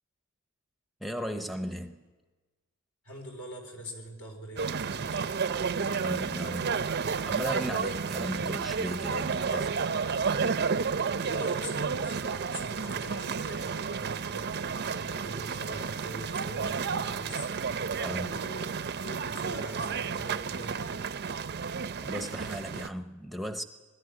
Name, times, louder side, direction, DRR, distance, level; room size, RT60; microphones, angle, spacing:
voice 1, 1.0-2.0 5.8-6.9 7.2-9.9 18.0-18.5 22.0-23.6, equal, ahead, 0.7 m, -36 dB
voice 2, 3.0-5.4 11.0-17.5 18.3-21.1, equal, 80° left, 4.4 m, -43 dB
sound 1, 4.6-22.9, right 5 dB, 50° right, 0.6 m, -31 dB
20.5 x 13.0 x 9.9 m
head